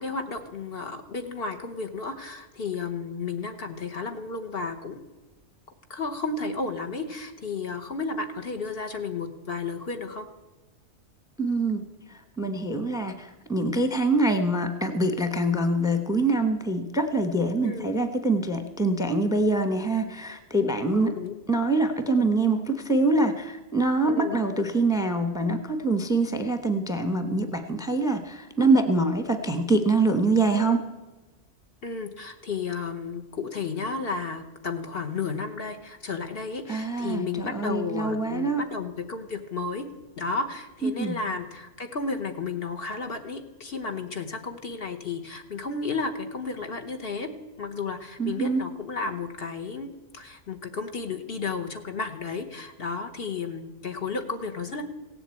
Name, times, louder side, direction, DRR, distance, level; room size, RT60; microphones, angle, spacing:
voice 1, 0.0-5.0 5.9-10.3 17.6-17.9 20.9-21.3 24.0-24.4 30.5-30.8 31.8-39.9 40.2-47.3 47.6-54.8, left 4 dB, 50° left, 4 dB, 1.3 m, -33 dB
voice 2, 11.4-11.8 12.1-21.1 21.5-30.8 36.7-38.6 40.8-41.2 48.2-48.6, right 2 dB, 5° right, 8 dB, 0.9 m, -25 dB
16.5 x 7.7 x 8.4 m, 1.2 s
omnidirectional pair, 1.3 m